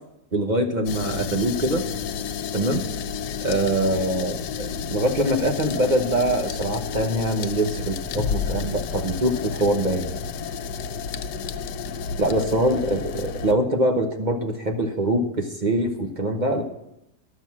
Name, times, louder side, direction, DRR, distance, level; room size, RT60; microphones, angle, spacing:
voice 1, 0.3-1.8 2.5-2.8 3.4-10.1 12.2-16.6, right 1 dB, 35° right, 3 dB, 0.9 m, -23 dB
sound 1, 0.9-13.5, left 6 dB, 80° left, 1.2 m, -31 dB
11.5 x 6.2 x 7.3 m, 0.86 s
omnidirectional pair, 1.8 m